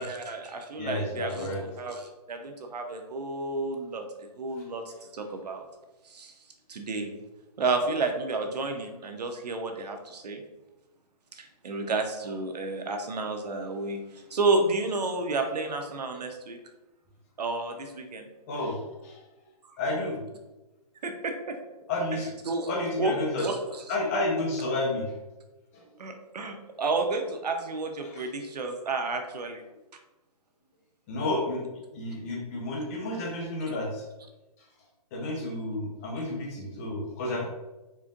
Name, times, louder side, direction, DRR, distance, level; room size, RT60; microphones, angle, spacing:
voice 1, 0.1-5.6 6.0-6.3 6.7-7.2 7.6-10.4 11.3-16.6 17.4-18.3 19.6-19.8 21.0-21.6 22.4-22.7 23.0-23.9 26.0-29.6, right 3 dB, 80° right, 5 dB, 0.8 m, -31 dB
voice 2, 0.8-1.6 18.5-19.2 19.8-20.2 21.9-22.3 22.7-23.5 23.9-25.1 25.7-25.8 28.0-28.3 31.1-31.6 31.9-34.0 35.1-37.5, left 2 dB, 20° left, -2 dB, 0.8 m, -31 dB
4.3 x 2.6 x 3.6 m, 1.1 s
hypercardioid pair, 165°, 20 cm